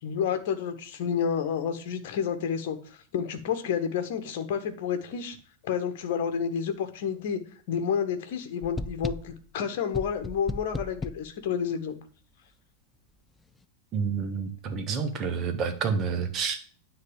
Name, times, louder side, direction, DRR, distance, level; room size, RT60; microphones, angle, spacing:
voice 1, 0.0-5.4 5.6-7.4 7.7-12.0, left 7 dB, 50° left, 8 dB, 1.3 m, -30 dB
sound 1, 8.6-9.4 9.9-11.3, left 3 dB, 10° left, 0.4 m, -35 dB
voice 2, 13.9-16.6, right 6 dB, 30° right, 7 dB, 1.5 m, -29 dB
9.8 x 4.0 x 7.2 m, 0.43 s
figure-of-eight pair, 90°, 0 cm